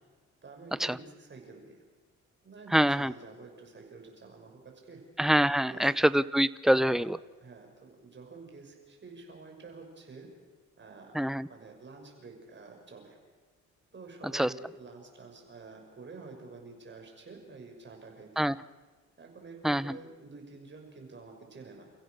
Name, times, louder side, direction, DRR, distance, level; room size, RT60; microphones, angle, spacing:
voice 1, 0.4-1.8 2.4-5.0 5.6-6.0 6.7-7.1 7.4-10.3 10.8-11.2 11.5-13.2 13.9-18.4 19.2-21.8, right 4 dB, 40° right, 2 dB, 6.3 m, -49 dB
voice 2, 2.7-3.1 5.2-7.2 11.1-11.5 14.3-14.5 18.4-18.5 19.6-20.0, equal, ahead, 17 dB, 0.6 m, -25 dB
29.0 x 15.5 x 6.6 m, 1.4 s
cardioid pair, 90°, 30 cm